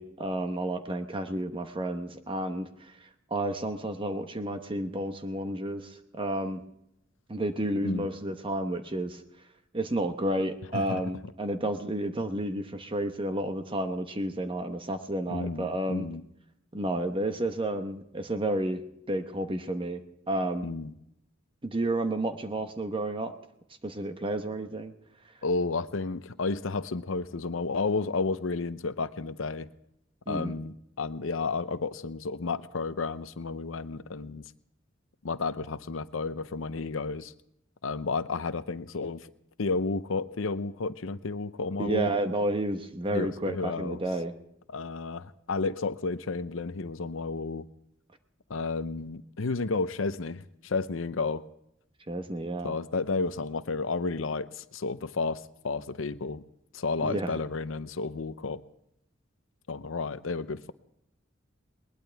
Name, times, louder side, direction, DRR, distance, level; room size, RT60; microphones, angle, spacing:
voice 1, 0.0-2.9 3.3-6.6 7.3-9.2 9.7-16.1 16.7-18.8 19.1-20.0 20.3-20.7 21.6-23.4 23.8-24.9 30.3-30.5 41.8-44.3 52.1-52.7 57.0-57.4, right 1 dB, 25° right, 1.0 m, -31 dB
voice 2, 15.3-16.2 20.6-20.9 25.4-29.7 30.3-34.4 35.2-37.3 37.8-39.3 39.6-42.1 43.1-44.0 44.7-47.7 48.5-51.4 52.6-56.4 56.7-58.6 59.7-60.7, left 4 dB, 80° left, 0.7 m, -32 dB
21.0 x 19.5 x 3.5 m
head